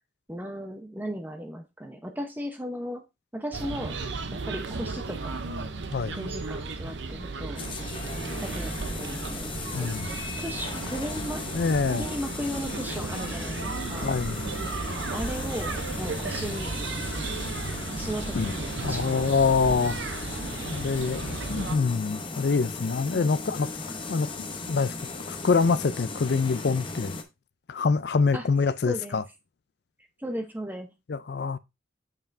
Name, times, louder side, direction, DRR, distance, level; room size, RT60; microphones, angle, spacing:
voice 1, 0.3-3.0 3.3-4.0 4.3-5.4 6.1-7.6 8.4-9.9 10.4-11.4 11.9-14.1 15.1-16.8 17.9-19.2 23.1-23.3 28.3-28.5 28.8-29.2 30.2-30.9, equal, 10° right, 0.8 m, -36 dB
sound 1, 3.5-21.8, right 3 dB, 75° right, 0.7 m, -35 dB
sound 2, 7.6-27.2, left 3 dB, 25° left, 0.7 m, -37 dB
voice 2, 9.7-10.1 11.5-12.0 14.0-14.5 18.3-18.5 18.8-20.0 20.7-23.7 24.1-24.9 25.3-27.2 27.7-29.2 31.1-31.6, left 4 dB, 60° left, 0.4 m, -25 dB
6.7 x 5.6 x 2.6 m
head